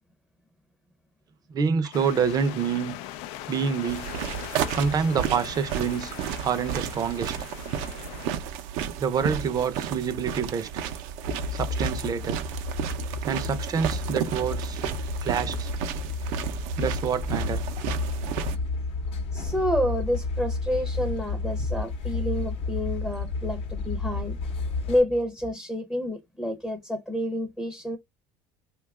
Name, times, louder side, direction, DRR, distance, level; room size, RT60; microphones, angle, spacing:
voice 1, 1.5-2.9 3.5-4.1 4.7-6.1 6.4-7.3 9.0-10.7 11.5-12.4 13.3-14.8 15.2-15.7 16.8-17.6, right 6 dB, 35° right, 0.5 m, -27 dB
sound 1, 1.9-8.3, left 13 dB, 75° left, 0.4 m, -40 dB
sound 2, 3.9-18.6, right 9 dB, 80° right, 0.5 m, -32 dB
sound 3, 11.2-25.0, left 3 dB, 60° left, 0.8 m, -31 dB
voice 2, 19.3-24.4 24.9-28.0, left 1 dB, 5° left, 0.6 m, -29 dB
2.8 x 2.3 x 3.4 m
cardioid pair, 115°, 11 cm